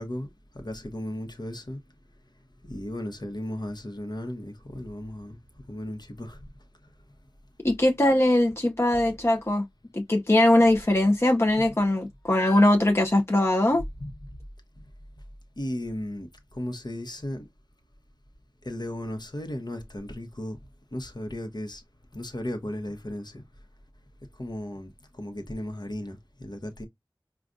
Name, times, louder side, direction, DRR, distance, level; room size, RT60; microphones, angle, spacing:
voice 1, 0.0-1.8 2.6-5.4 5.7-6.5 11.6-11.7 14.0-14.1 15.6-17.5 18.6-20.6 20.9-21.8 22.1-23.4 24.4-26.8, left 1 dB, 60° left, 1.0 m, -35 dB
voice 2, 7.6-9.6 9.9-13.8, left 1 dB, 35° left, 0.6 m, -21 dB
4.9 x 2.3 x 2.5 m
wide cardioid pair, 45°, 8 cm